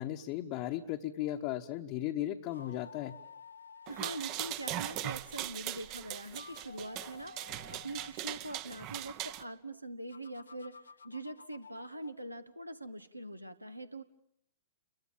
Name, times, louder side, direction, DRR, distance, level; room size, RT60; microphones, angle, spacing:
voice 1, 0.0-3.2, left 13 dB, 35° left, 3 dB, 1.1 m, -36 dB
sound 1, 2.4-4.5 6.2-8.1 10.1-12.2, left 5 dB, 75° left, 1.1 m, -53 dB
sound 2, 3.9-9.4, right 13 dB, 35° right, 1.0 m, -40 dB
voice 2, 3.9-14.0, right 1 dB, 90° right, 11 dB, 1.3 m, -43 dB
29.0 x 22.5 x 7.3 m, 0.75 s
figure-of-eight pair, 110°, 0 cm